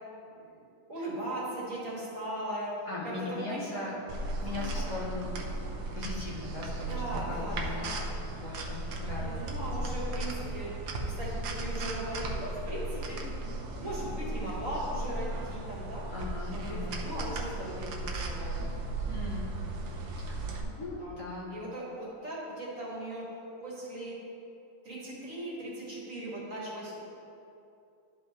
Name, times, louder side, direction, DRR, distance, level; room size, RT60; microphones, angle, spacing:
voice 1, 0.3-0.6 0.9-2.7 3.0-3.8 4.4-4.9 6.9-8.0 9.2-13.2 13.8-16.1 16.5-18.7 20.5-21.1 21.5-23.2 23.6-24.2 24.8-27.0, right 1 dB, 45° right, -6 dB, 2.0 m, -39 dB
voice 2, 2.9-3.9 4.4-8.0 8.3-9.5 9.8-9.9 16.1-17.0 19.1-19.5 20.8-21.6, left 3 dB, 50° left, -6 dB, 1.4 m, -39 dB
sound 1, 4.1-20.6, right 2 dB, 65° right, 1.3 m, -36 dB
12.0 x 5.5 x 3.1 m, 2.7 s
omnidirectional pair, 2.0 m